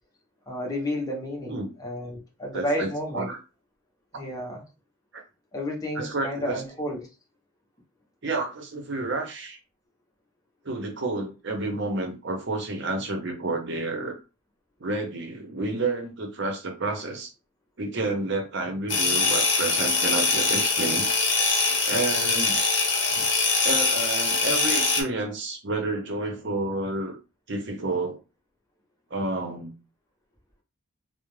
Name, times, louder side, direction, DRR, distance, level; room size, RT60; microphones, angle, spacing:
voice 1, 0.5-3.3 4.1-4.6 5.5-7.1 18.9-19.4 23.1-23.3, equal, 15° left, 0.7 m, -32 dB
voice 2, 2.5-2.9 3.1-3.4 5.1-5.2 6.0-6.6 8.2-9.6 10.6-14.2 14.8-17.3 17.8-21.1 21.8-22.7 23.6-27.2 27.5-28.2 29.1-29.7, right 2 dB, 55° right, 0.7 m, -30 dB
sound 1, 18.9-25.0, left 4 dB, 55° left, 0.8 m, -23 dB
2.3 x 2.0 x 3.1 m
head